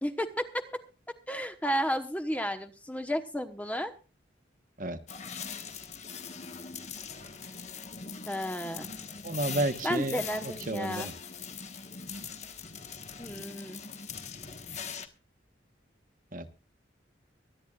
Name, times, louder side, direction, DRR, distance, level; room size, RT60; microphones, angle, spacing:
voice 1, 0.0-0.6 1.3-3.9 8.3-8.9 9.8-11.1 13.2-13.8, equal, 10° left, 7 dB, 1.1 m, -32 dB
sound 1, 5.1-15.1, left 6 dB, 35° left, 1.4 m, -41 dB
voice 2, 9.2-11.1 16.3-16.5, right 2 dB, 45° right, 9 dB, 1.2 m, -32 dB
24.0 x 10.0 x 2.4 m, 0.33 s
head